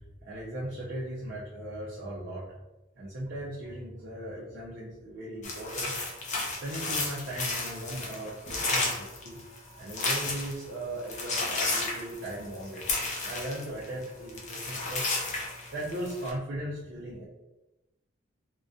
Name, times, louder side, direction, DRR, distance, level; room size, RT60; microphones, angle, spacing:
voice 1, 0.2-2.4 3.0-5.9 6.6-9.4 9.8-12.8 13.2-15.1 15.7-17.2, right 1 dB, 55° right, -6 dB, 0.5 m, -38 dB
sound 1, 5.4-10.7 11.0-14.0 14.3-16.3, left 3 dB, 35° left, 0.5 m, -32 dB
2.3 x 2.2 x 2.6 m, 0.99 s
head